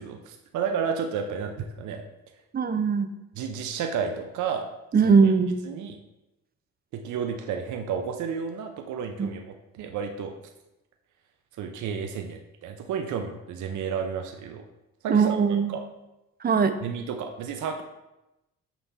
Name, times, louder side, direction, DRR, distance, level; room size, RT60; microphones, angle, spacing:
voice 1, 0.0-2.0 3.4-4.7 5.0-5.1 5.6-6.0 6.9-10.3 11.6-14.6 15.0-15.4 15.7-15.8 16.8-17.8, right 6 dB, 75° right, 5 dB, 0.7 m, -31 dB
voice 2, 2.5-3.1 4.9-5.6 9.2-9.3 15.1-15.7 16.4-16.7, right 5 dB, 30° right, 9 dB, 0.6 m, -20 dB
6.1 x 3.4 x 5.6 m, 0.95 s
cardioid pair, 90°, 30 cm